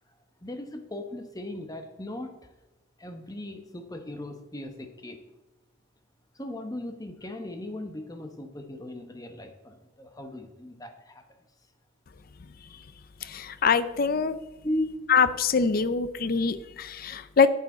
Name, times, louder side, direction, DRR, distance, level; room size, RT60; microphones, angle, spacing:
voice 1, 0.4-2.5 3.0-5.2 6.3-11.2 14.6-15.1, left 1 dB, 20° left, 6 dB, 1.0 m, -37 dB
voice 2, 13.2-14.4 15.1-17.5, left 5 dB, 50° left, 13 dB, 0.5 m, -24 dB
10.5 x 8.4 x 3.8 m, 1.0 s
head